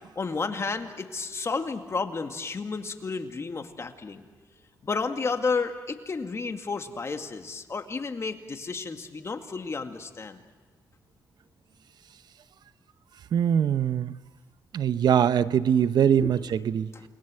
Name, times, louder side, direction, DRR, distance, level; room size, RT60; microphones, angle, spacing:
voice 1, 0.2-4.3 4.8-10.4 16.2-16.5 16.7-17.0, left 4 dB, 40° left, 6 dB, 2.2 m, -32 dB
voice 2, 13.3-14.1 14.7-16.9, right 9 dB, 75° right, 14 dB, 0.8 m, -22 dB
29.0 x 21.5 x 7.8 m, 1.3 s
cardioid pair, 85°, 7 cm